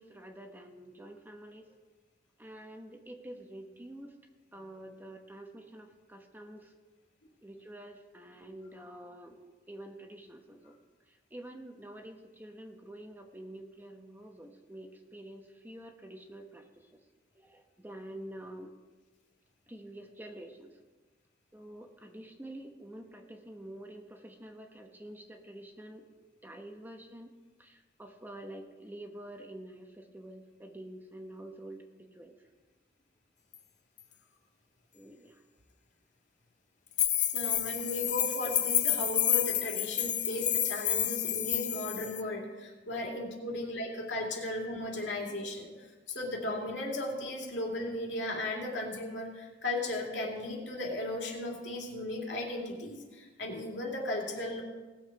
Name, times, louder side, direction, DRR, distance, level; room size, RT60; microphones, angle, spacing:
voice 1, 0.0-1.7 2.4-4.1 4.5-6.7 7.4-10.7 11.1-16.9 17.3-18.7 19.7-20.8 21.5-26.0 26.4-27.3 27.6-32.4 34.9-35.4 37.1-37.2, right 1 dB, 10° right, 4 dB, 1.0 m, -48 dB
sound 1, 33.5-33.6 34.0-34.1 37.0-42.2, left 11 dB, 45° left, 0.8 m, -29 dB
voice 2, 37.3-54.6, left 1 dB, 80° left, -1 dB, 2.6 m, -36 dB
19.0 x 7.2 x 4.7 m, 1.3 s
head